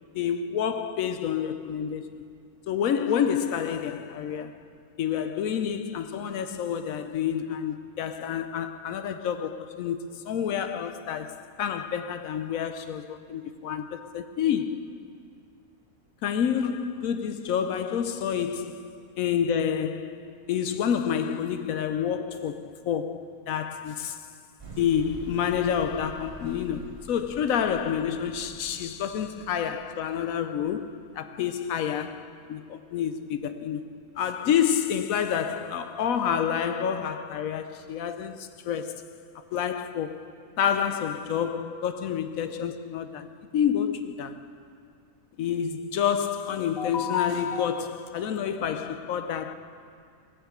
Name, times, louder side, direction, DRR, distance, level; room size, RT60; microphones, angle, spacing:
voice 1, 0.1-2.3 2.7-4.7 5.0-14.9 16.2-24.3 24.8-33.8 34.2-39.1 39.5-40.3 40.6-44.5 45.4-49.5, left 8 dB, 75° left, 1.0 m, -28 dB
sound 1, 24.6-30.6 31.2-31.3, right 2 dB, 20° right, 2.2 m, -46 dB
18.0 x 7.0 x 8.0 m
omnidirectional pair, 1.5 m